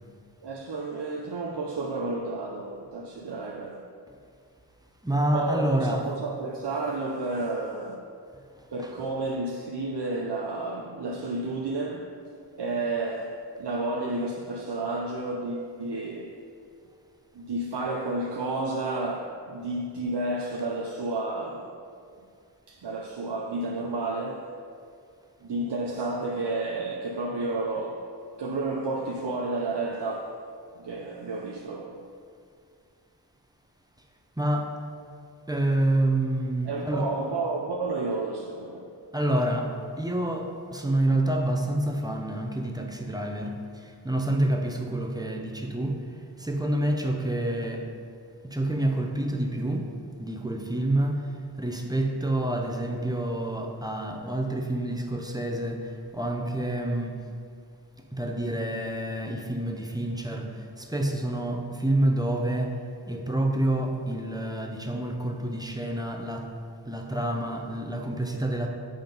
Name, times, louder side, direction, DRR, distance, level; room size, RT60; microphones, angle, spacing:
voice 1, 0.4-3.8 5.1-8.1 8.7-12.1 12.6-16.4 17.3-21.8 22.7-24.5 25.4-28.1 28.4-30.4 30.8-32.0 36.7-38.9, right 2 dB, 75° right, 0 dB, 0.7 m, -31 dB
voice 2, 5.0-6.1 8.5-8.9 34.4-34.8 35.5-37.1 39.1-47.9 48.4-49.9 50.2-51.3 51.6-57.2 58.1-62.8 63.1-66.5 66.8-68.7, right 1 dB, 10° right, 2 dB, 0.7 m, -28 dB
9.2 x 3.8 x 5.2 m, 2.3 s
wide cardioid pair, 70°, 41 cm